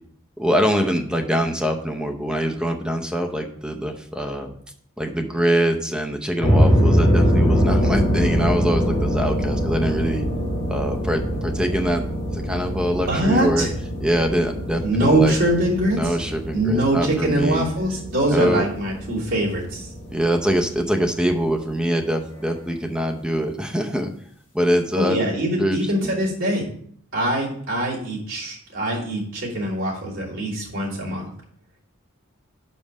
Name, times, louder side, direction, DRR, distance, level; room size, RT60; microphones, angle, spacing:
voice 1, 0.4-4.5 5.0-10.3 10.7-12.1 12.3-13.7 14.0-15.3 15.9-17.7 18.3-18.7 20.1-24.1 24.5-25.2 25.5-26.2, equal, 5° right, 4 dB, 0.6 m, -23 dB
sound 1, 6.4-21.6, equal, 25° left, 3.2 m, -23 dB
voice 2, 13.1-13.7 14.8-16.2 16.5-19.9 25.0-26.6 27.1-31.3, right 1 dB, 65° right, -7 dB, 2.9 m, -23 dB
5.4 x 5.3 x 6.1 m, 0.63 s
head